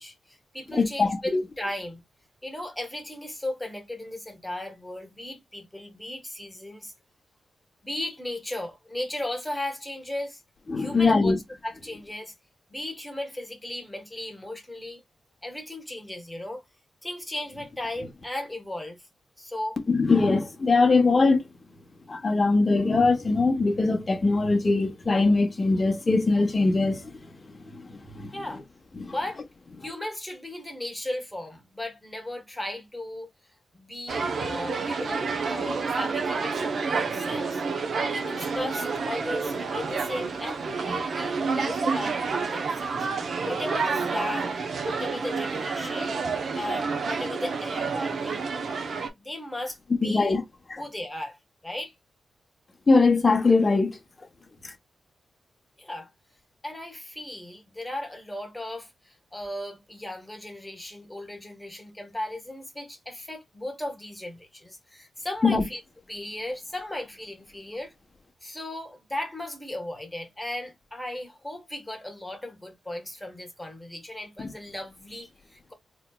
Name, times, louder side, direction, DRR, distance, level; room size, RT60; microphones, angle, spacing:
voice 1, 0.0-2.0 2.4-6.9 7.8-10.4 10.8-11.4 11.6-12.3 12.7-15.0 15.4-16.6 17.0-19.1 19.4-19.8 28.3-28.6 29.0-29.4 29.8-33.3 33.7-37.6 38.1-43.1 43.4-44.5 44.8-46.2 46.5-48.5 49.1-50.4 50.8-51.4 51.6-51.9 55.8-56.1 56.6-65.8 66.1-67.9 68.4-75.7, left 1 dB, 10° left, 1.3 m, -36 dB
voice 2, 0.7-1.4 10.7-11.4 19.9-21.4 22.1-27.0 27.7-28.3 29.0-29.1 50.0-50.4 50.7-50.8 52.9-54.0 65.4-65.6, left 3 dB, 30° left, 1.0 m, -22 dB
sound 1, 34.1-49.1, right 4 dB, 65° right, 0.8 m, -29 dB
4.0 x 3.0 x 2.3 m
wide cardioid pair, 115°, 0 cm